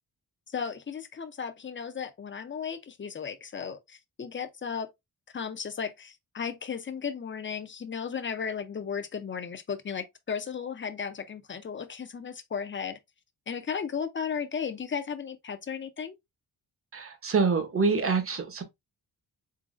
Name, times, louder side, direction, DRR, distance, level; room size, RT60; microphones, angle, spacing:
voice 1, 0.5-4.9 5.3-13.0 13.5-16.2, left 6 dB, 30° left, 0.5 m, -35 dB
voice 2, 16.9-18.6, right 4 dB, 35° right, 0.8 m, -26 dB
4.0 x 3.8 x 2.4 m
wide cardioid pair, 170°, 39 cm